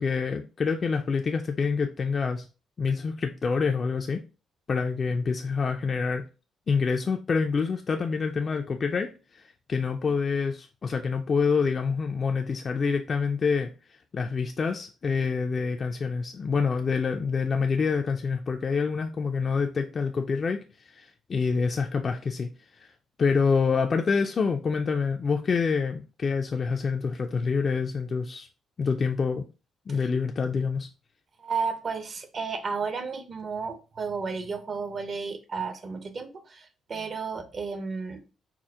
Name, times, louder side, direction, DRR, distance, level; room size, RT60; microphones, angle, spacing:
voice 1, 0.0-2.4 2.8-4.2 4.7-6.2 6.7-9.4 9.7-13.7 14.1-20.6 20.9-22.5 22.8-22.9 23.2-28.5 28.8-29.5 29.9-30.9, left 5 dB, 40° left, 4 dB, 0.3 m, -27 dB
voice 2, 31.4-38.2, right 5 dB, 45° right, 9 dB, 0.6 m, -33 dB
4.3 x 2.1 x 3.5 m, 0.33 s
cardioid pair, 90°, 0 cm